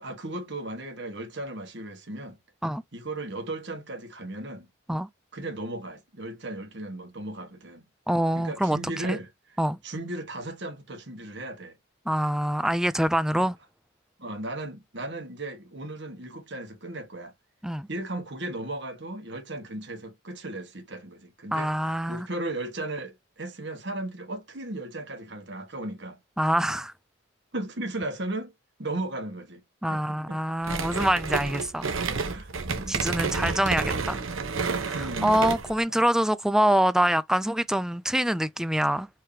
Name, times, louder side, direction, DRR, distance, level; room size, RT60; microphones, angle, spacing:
voice 1, 0.0-2.4 2.9-4.7 5.3-7.9 8.3-9.6 9.8-11.8 13.3-13.5 14.2-17.3 17.9-21.7 22.1-26.2 27.5-28.5 28.8-29.6 29.9-30.4 32.1-33.0 34.9-35.6 35.9-36.0, right 2 dB, 55° right, 1.6 m, -36 dB
voice 2, 8.1-9.2 9.6-9.8 12.1-13.6 17.6-17.9 21.5-22.3 26.4-26.9 29.8-31.9 32.9-34.2 34.8-39.1, equal, 5° right, 0.3 m, -25 dB
sound 1, 30.6-35.8, right 4 dB, 75° right, 1.0 m, -30 dB
4.7 x 2.9 x 3.3 m
head